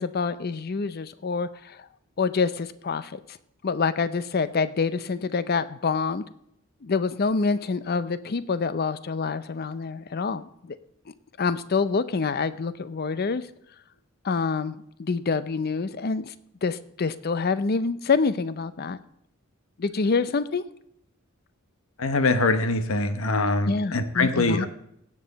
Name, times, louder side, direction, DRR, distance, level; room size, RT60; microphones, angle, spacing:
voice 1, 0.0-1.9 2.2-3.4 3.6-6.2 6.8-10.8 11.4-13.4 14.2-16.3 16.6-19.0 19.8-20.6 23.6-24.7, left 4 dB, 45° left, 14 dB, 0.5 m, -26 dB
voice 2, 22.0-24.7, left 2 dB, 75° left, 10 dB, 1.0 m, -23 dB
17.0 x 7.6 x 4.0 m, 0.74 s
head